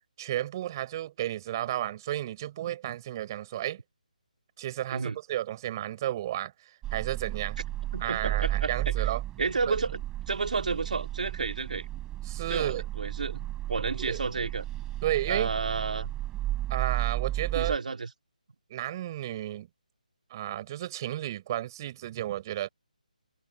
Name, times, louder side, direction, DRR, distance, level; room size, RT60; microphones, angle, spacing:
voice 1, 0.2-3.8 4.6-6.5 6.9-7.6 8.0-9.2 9.7-9.8 12.3-12.8 14.0-14.2 15.0-15.5 16.7-17.7 18.7-19.7 20.3-22.7, right 13 dB, 30° right, 4.5 m, -32 dB
sound 1, 6.8-17.8, right 14 dB, 10° right, 4.6 m, -33 dB
voice 2, 7.9-9.1 9.4-11.9 12.5-13.4 13.7-14.7 15.3-16.1 17.5-18.1, right 4 dB, 65° right, 2.5 m, -31 dB
figure-of-eight pair, 155°, 5 cm